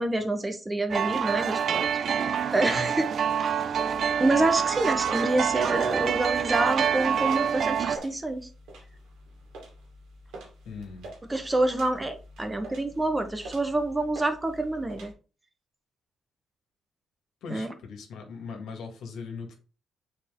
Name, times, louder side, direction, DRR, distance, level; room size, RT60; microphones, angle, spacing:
voice 1, 0.0-3.1 4.2-8.5 11.3-15.1 17.5-17.7, right 2 dB, 20° right, 7 dB, 1.1 m, -27 dB
sound 1, 0.9-8.0, right 8 dB, 55° right, 0.5 m, -26 dB
sound 2, 3.7-15.1, right 1 dB, 85° right, 2.4 m, -46 dB
voice 2, 10.7-11.1 17.4-19.6, left 5 dB, 75° left, 3 dB, 1.9 m, -39 dB
7.1 x 4.4 x 3.8 m, 0.35 s
cardioid pair, 90°, 0 cm